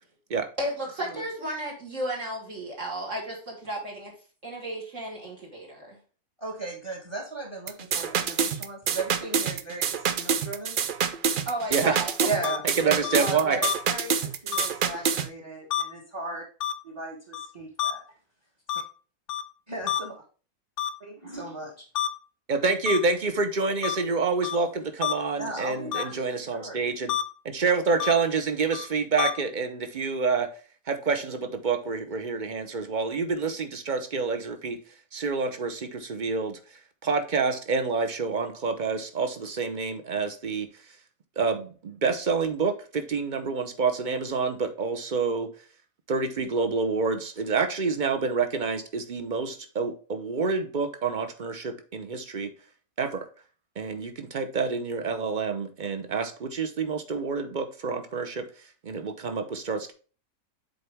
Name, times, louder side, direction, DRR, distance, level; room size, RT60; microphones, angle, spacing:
voice 1, 0.6-4.1 4.4-6.0 11.5-12.5, right 1 dB, 55° right, -2 dB, 2.1 m, -33 dB
voice 2, 6.4-11.2 12.2-16.4 16.8-18.0 19.7-20.1 21.0-21.9 25.4-26.8, right 2 dB, 20° right, 2 dB, 1.3 m, -36 dB
sound 1, 7.7-15.3, right 7 dB, 70° right, 0.5 m, -27 dB
sound 2, 12.4-12.6 13.0-13.2 13.6-13.7 14.5-14.7 15.7-15.8 16.6-16.7 17.3-17.5 17.8-17.9 18.7-18.8 19.3-19.4 19.9-20.0 20.8-20.9 21.9-22.1 22.9-23.0 23.8-24.0 24.4-24.6 25.0-25.1 25.9-26.0 27.1-27.2 28.0-28.1 28.7-28.9 29.2-29.3, left 10 dB, 65° left, 0.8 m, -27 dB
voice 3, 12.8-13.6 22.5-27.1 27.4-30.5 30.9-34.8 35.1-36.6 37.0-40.7 41.4-45.5 46.1-52.5 53.0-53.3 53.8-58.5 58.8-59.9, right 4 dB, 40° right, 8 dB, 0.8 m, -27 dB
7.7 x 4.2 x 3.4 m, 0.38 s
omnidirectional pair, 1.6 m